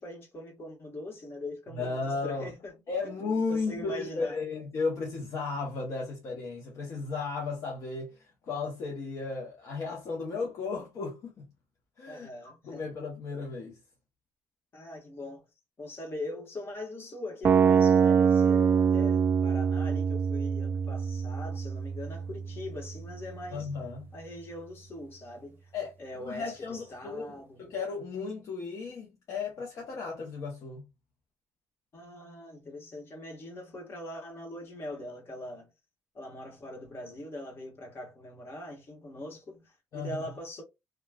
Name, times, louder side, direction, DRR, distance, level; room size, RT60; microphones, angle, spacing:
voice 1, 0.0-2.8 3.5-4.4 12.1-12.9 14.7-15.4 15.8-23.7 24.1-25.7 26.0-27.7 31.9-35.7 36.1-40.6, left 1 dB, 40° left, 1.5 m, -42 dB
voice 2, 1.7-2.5 2.9-11.5 12.0-13.8 23.5-24.0 25.7-25.9 26.2-30.9 39.9-40.2, left 4 dB, 60° left, 0.9 m, -34 dB
sound 1, 17.4-23.5, right 7 dB, 40° right, 0.4 m, -25 dB
3.0 x 2.4 x 2.3 m
cardioid pair, 90°, 6 cm